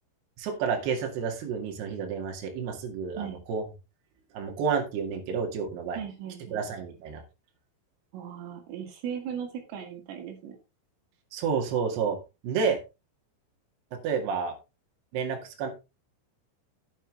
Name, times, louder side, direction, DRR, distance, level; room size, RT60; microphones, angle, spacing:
voice 1, 0.4-3.7 4.3-6.0 6.5-7.2 11.3-12.2 12.4-12.8 14.0-14.6 15.1-15.7, right 6 dB, 60° right, 2 dB, 3.8 m, -30 dB
voice 2, 6.0-6.6 8.1-10.6, right 8 dB, 80° right, 4 dB, 4.3 m, -37 dB
16.0 x 5.9 x 3.4 m, 0.27 s
omnidirectional pair, 5.9 m